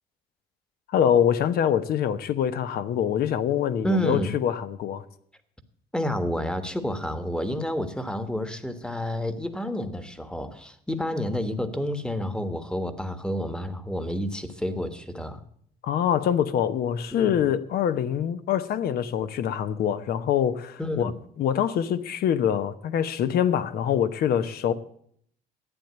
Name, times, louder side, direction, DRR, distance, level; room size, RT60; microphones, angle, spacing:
voice 1, 0.9-5.0 15.8-21.1 21.4-24.7, left 9 dB, 65° left, 0.9 m, -24 dB
voice 2, 3.8-4.4 5.9-15.4 17.1-17.5 20.8-21.2, left 1 dB, 5° left, 1.3 m, -29 dB
11.5 x 8.9 x 7.9 m
cardioid pair, 110°, 17 cm